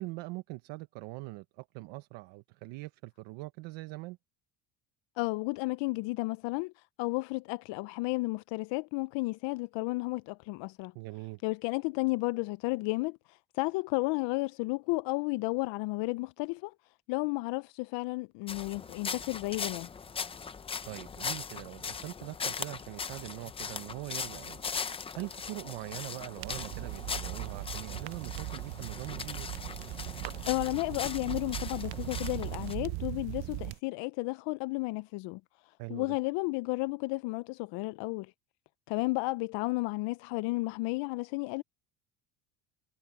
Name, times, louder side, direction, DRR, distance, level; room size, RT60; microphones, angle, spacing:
voice 1, 0.0-4.2 10.9-11.4 20.8-24.6 25.1-29.5 35.8-36.2, right 21 dB, 80° right, 1.0 m, -42 dB
voice 2, 5.2-10.9 11.4-16.7 17.1-19.9 30.5-35.4 35.9-38.3 38.9-41.6, left 24 dB, 70° left, 0.5 m, -33 dB
sound 1, 18.5-32.8, left 5 dB, 15° left, 0.4 m, -40 dB
sound 2, 26.4-33.8, right 20 dB, 60° right, 0.6 m, -39 dB
cardioid pair, 175°, 44 cm